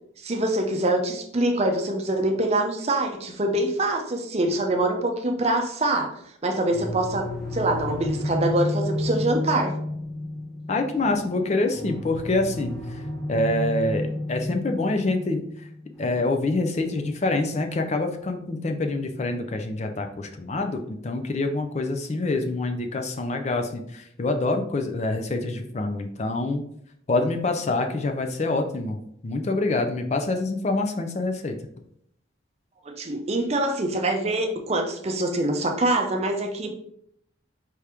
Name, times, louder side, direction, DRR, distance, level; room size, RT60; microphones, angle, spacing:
voice 1, 0.2-6.1 6.4-9.7 32.8-36.7, right 1 dB, 30° right, 4 dB, 0.5 m, -24 dB
sound 1, 6.7-19.5, left 1 dB, ahead, 0.8 m, -33 dB
voice 2, 10.7-13.0 13.3-15.4 16.0-26.6 27.1-29.0 29.2-31.6, left 2 dB, 35° left, 5 dB, 0.4 m, -26 dB
4.8 x 2.9 x 3.4 m, 0.70 s
head